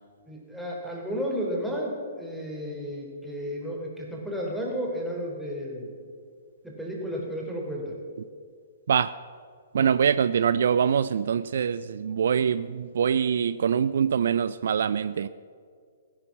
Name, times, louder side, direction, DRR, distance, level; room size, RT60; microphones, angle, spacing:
voice 1, 0.3-5.9 6.6-8.0, equal, ahead, -2 dB, 3.5 m, -33 dB
voice 2, 9.7-15.3, right 7 dB, 60° right, 15 dB, 0.4 m, -24 dB
16.5 x 11.0 x 7.1 m, 2.1 s
figure-of-eight pair, 120°, 0 cm